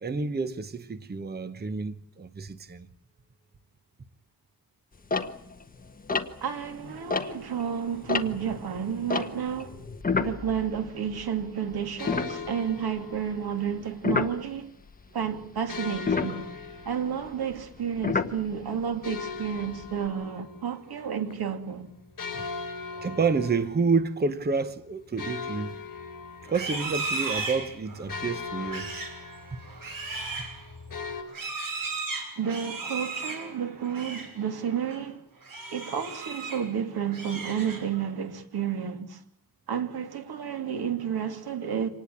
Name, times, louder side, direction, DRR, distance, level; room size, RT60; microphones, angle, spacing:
voice 1, 0.0-2.9 22.3-22.6 22.9-25.8 26.5-28.9, right 4 dB, 25° right, 1.0 m, -29 dB
sound 1, 5.0-7.6 7.9-11.4 11.7-11.8 12.1-12.9 14.0-14.4 15.9-18.8 19.4-20.1, left 4 dB, 25° left, 1.4 m, -30 dB
voice 2, 6.4-9.8 10.2-14.7 15.1-16.4 16.8-21.9 32.4-35.2 35.7-39.2 39.7-41.9, right 8 dB, 80° right, 2.7 m, -31 dB
sound 2, 12.0-13.7 15.7-18.1 19.0-21.0 21.3-21.4 22.2-24.2 24.6-24.7 25.2-31.2, left 5 dB, 55° left, 6.5 m, -39 dB
Livestock farm animals working animals, 26.4-34.4 34.7-35.0 35.4-36.7 37.0-38.1, right 3 dB, 60° right, 6.1 m, -36 dB
26.0 x 19.0 x 8.5 m
wide cardioid pair, 155°, 37 cm